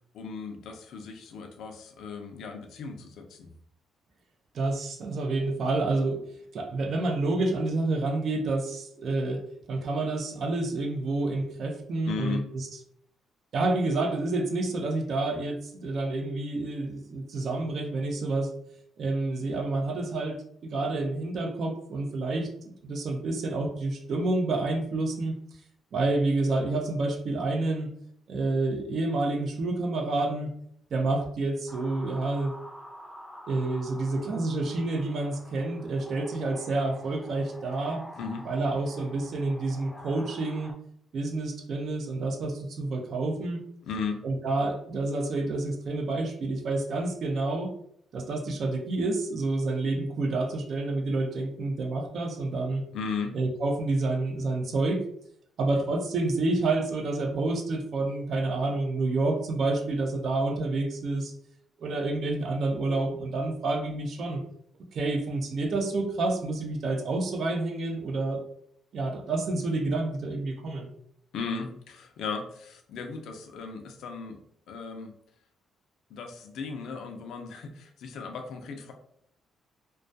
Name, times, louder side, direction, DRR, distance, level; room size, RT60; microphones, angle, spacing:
voice 1, 0.1-3.5 12.1-12.4 38.2-38.5 43.9-44.2 52.9-53.3 71.3-74.4 74.7-75.1 76.1-78.9, left 5 dB, 75° left, 4 dB, 0.4 m, -36 dB
voice 2, 4.5-6.2 6.5-9.4 9.7-12.7 13.5-18.5 19.0-22.5 22.8-25.3 25.9-27.9 28.3-30.5 30.9-32.6 33.5-38.0 38.5-40.7 41.1-43.6 44.2-47.7 48.1-52.8 53.3-55.0 55.6-61.3 61.8-64.4 64.9-68.4 68.9-70.9, right 2 dB, 60° right, 4 dB, 0.5 m, -28 dB
sound 1, 31.7-40.7, equal, 5° left, 0.5 m, -47 dB
2.2 x 2.2 x 2.5 m, 0.68 s
cardioid pair, 90°, 0 cm